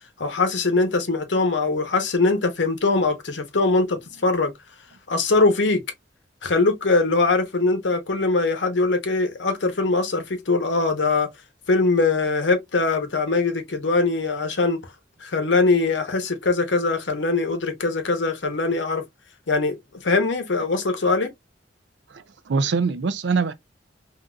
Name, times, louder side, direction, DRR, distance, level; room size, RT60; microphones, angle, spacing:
voice 1, 0.2-4.5 5.1-5.8 6.4-11.3 11.7-14.8 15.2-19.0 19.5-21.3, left 3 dB, 85° left, 0.9 m, -22 dB
voice 2, 22.1-23.5, right 4 dB, 75° right, 0.4 m, -24 dB
3.8 x 2.6 x 2.3 m
head